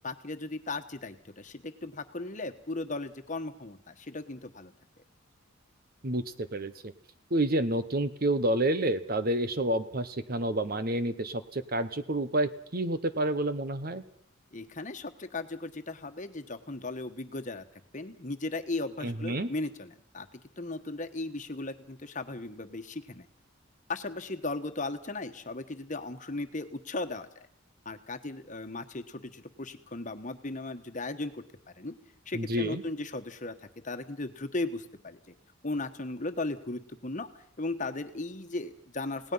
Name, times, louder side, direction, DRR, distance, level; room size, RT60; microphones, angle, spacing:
voice 1, 0.0-4.7 14.5-17.7 17.9-23.3 23.9-27.5 27.8-31.4 31.8-31.9 32.3-33.5 33.8-35.3 35.6-37.3 37.6-39.3, left 2 dB, 40° left, 8 dB, 1.4 m, -36 dB
voice 2, 6.0-6.7 7.3-14.0 19.0-19.5 32.3-32.8, right 1 dB, 45° right, 12 dB, 1.1 m, -29 dB
29.5 x 18.0 x 5.7 m, 0.65 s
head